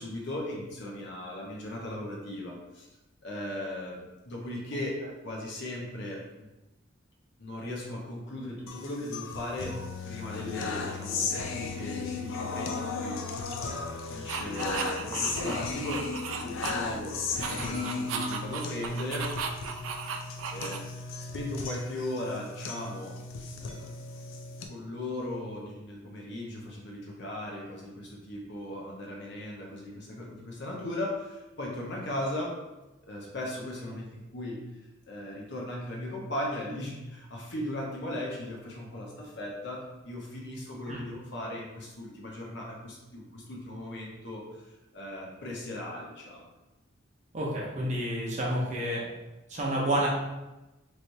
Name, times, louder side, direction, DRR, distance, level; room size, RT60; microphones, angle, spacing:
voice 1, 0.0-2.9 3.2-5.0 5.2-6.5 7.4-9.8 10.0-19.3 20.5-23.2 23.6-23.9 24.7-32.5 33.1-34.6 35.1-44.7 44.9-46.5, left 1 dB, 60° left, -2 dB, 0.8 m, -37 dB
sound 1, 8.7-24.7, left 4 dB, 75° left, 0.4 m, -36 dB
sound 2, 14.3-17.0 17.3-21.1, right 6 dB, 85° right, 0.4 m, -36 dB
voice 2, 47.3-49.0 49.5-50.1, right 1 dB, 35° right, -3 dB, 0.7 m, -29 dB
3.3 x 3.1 x 2.7 m, 1.0 s
head